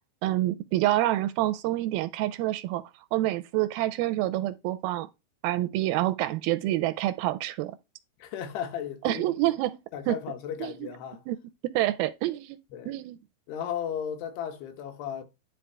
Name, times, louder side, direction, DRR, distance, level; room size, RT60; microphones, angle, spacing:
voice 1, 0.2-2.8 3.1-5.1 5.4-7.8 9.0-9.8 10.1-10.2 10.6-10.9 11.3-11.4 11.6-12.6 12.9-13.2, right 15 dB, 80° right, 2.3 m, -27 dB
voice 2, 8.2-9.5 9.9-11.2 12.7-12.9 13.5-15.2, left 9 dB, 85° left, 3.2 m, -35 dB
10.5 x 4.1 x 3.3 m
omnidirectional pair, 4.6 m